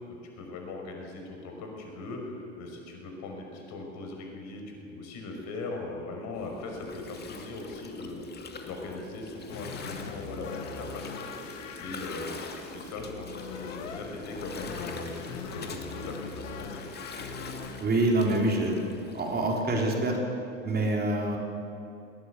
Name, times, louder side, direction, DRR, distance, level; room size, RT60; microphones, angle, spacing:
voice 1, 0.1-11.3 11.8-16.9, left 2 dB, 45° left, 2 dB, 5.9 m, -40 dB
Gurgling, 6.3-19.6, left 3 dB, 25° left, 2.7 m, -43 dB
sound 1, 9.5-17.8, left 5 dB, 75° left, 2.3 m, -42 dB
voice 2, 17.8-18.8 19.1-20.2 20.6-21.4, right 2 dB, 25° right, 1 dB, 3.9 m, -26 dB
20.5 x 17.5 x 8.5 m, 2.8 s
hypercardioid pair, 85°, 38 cm